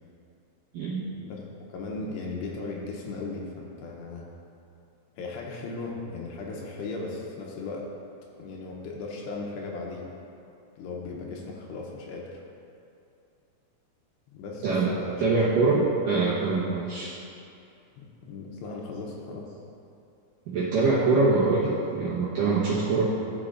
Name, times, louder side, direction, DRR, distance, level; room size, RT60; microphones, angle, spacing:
voice 1, 1.7-4.3 5.2-7.9 8.4-10.1 10.8-12.4 14.3-15.3 15.6-15.8 18.0-19.5, left 3 dB, 80° left, -2 dB, 2.7 m, -37 dB
voice 2, 15.2-17.1 20.5-23.0, right 3 dB, 70° right, -9 dB, 2.1 m, -24 dB
13.5 x 5.8 x 2.5 m, 2.6 s
omnidirectional pair, 5.2 m